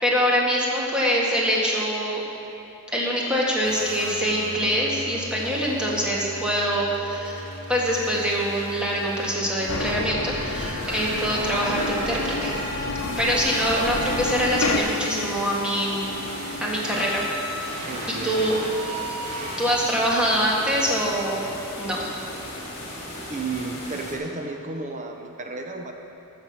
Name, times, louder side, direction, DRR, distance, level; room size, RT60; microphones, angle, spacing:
voice 1, 0.0-2.2 2.9-12.5 13.2-16.1 16.6-17.3 18.1-18.6 19.3-21.5 21.8-22.2, equal, 5° right, -4 dB, 1.6 m, -24 dB
sound 1, 3.6-19.7, equal, 85° right, 1.7 m, -36 dB
sound 2, 9.7-14.8, left 3 dB, 70° left, 0.9 m, -29 dB
voice 2, 12.8-13.5 17.9-18.5 23.3-25.9, right 3 dB, 35° right, 3 dB, 0.7 m, -34 dB
sound 3, 13.0-24.2, left 1 dB, 50° left, 2.6 m, -37 dB
13.5 x 6.6 x 5.8 m, 2.8 s
head